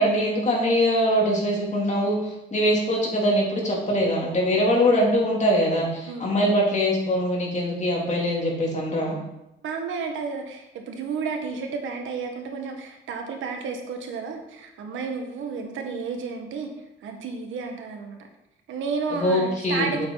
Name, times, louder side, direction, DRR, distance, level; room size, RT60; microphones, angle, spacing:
voice 1, 0.0-2.2 2.5-9.2 19.1-20.1, equal, 35° left, -2 dB, 3.3 m, -22 dB
voice 2, 6.0-6.4 9.6-16.7 17.0-18.2 18.7-20.1, right 5 dB, 80° right, 3 dB, 1.7 m, -32 dB
8.5 x 7.8 x 4.2 m, 0.90 s
cardioid pair, 90°, 20 cm